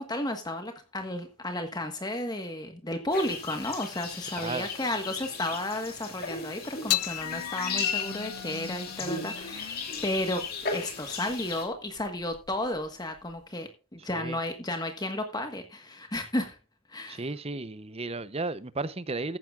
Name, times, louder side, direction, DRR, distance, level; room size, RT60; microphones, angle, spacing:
voice 1, 0.0-9.7 10.0-10.4 10.7-16.6 16.9-17.3, left 1 dB, 20° left, 1.4 m, -33 dB
sound 1, 3.1-11.7, left 5 dB, 40° left, 3.1 m, -36 dB
voice 2, 4.4-4.7 14.1-14.4 17.1-19.4, right 3 dB, 25° right, 0.7 m, -34 dB
sound 2, 6.9-13.4, left 13 dB, 90° left, 0.6 m, -37 dB
14.5 x 10.5 x 2.4 m
head